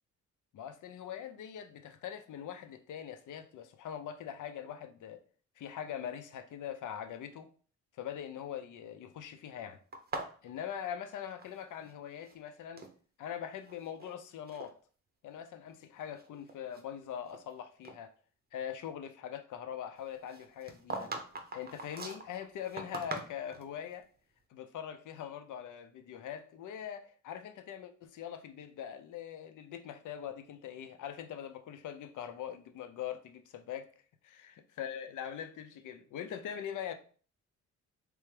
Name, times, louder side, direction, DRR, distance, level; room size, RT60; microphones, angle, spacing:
voice 1, 0.5-5.2 5.6-7.5 8.0-9.8 10.4-12.8 13.2-14.7 15.2-18.1 18.5-21.2 21.5-24.1 24.5-33.9 34.4-34.5 34.8-36.9, left 9 dB, 75° left, 0.6 m, -42 dB
sound 1, 9.9-11.9 12.2-13.0 13.6-14.1 14.5-14.7 15.4-15.5 16.0-17.5 17.8-18.0 20.3-23.7, right 3 dB, 30° right, 0.6 m, -42 dB
3.5 x 3.4 x 3.2 m
cardioid pair, 115°, 31 cm